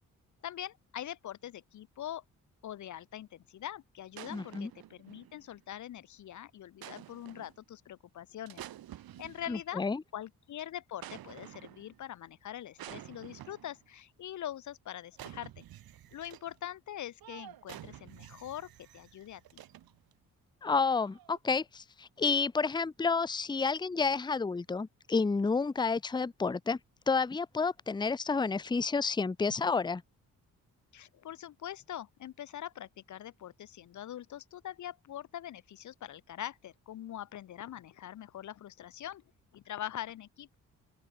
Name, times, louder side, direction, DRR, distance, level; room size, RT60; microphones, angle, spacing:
voice 1, 0.4-2.2 2.6-8.6 9.2-9.8 10.1-15.6 16.1-19.6 30.9-39.2 39.5-40.6, left 11 dB, 55° left, 0.6 m, -43 dB
sound 1, 4.1-5.6 6.8-7.6 8.5-9.9 11.0-12.0 12.8-13.8 15.1-16.6 17.2-20.1 21.0-21.4, right 13 dB, 80° right, 2.7 m, -50 dB
voice 2, 4.3-4.7 9.5-10.0 20.6-26.8 27.1-30.0, left 4 dB, 10° left, 0.6 m, -30 dB
open air
cardioid pair, 65°, 35 cm